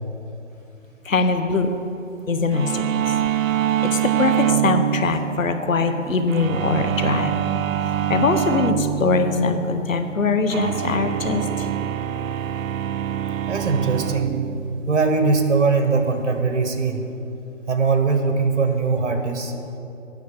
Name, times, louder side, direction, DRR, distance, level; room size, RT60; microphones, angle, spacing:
voice 1, 1.0-1.7 2.3-3.1 3.8-7.3 8.1-11.7, left 4 dB, 90° left, 8 dB, 1.0 m, -22 dB
sound 1, 2.5-17.0, right 10 dB, 90° right, 0.5 m, -26 dB
voice 2, 13.5-14.4 14.9-17.0 17.7-19.5, right 4 dB, 65° right, 6 dB, 1.3 m, -21 dB
9.3 x 6.2 x 7.1 m, 2.8 s
hypercardioid pair, 175°, 38 cm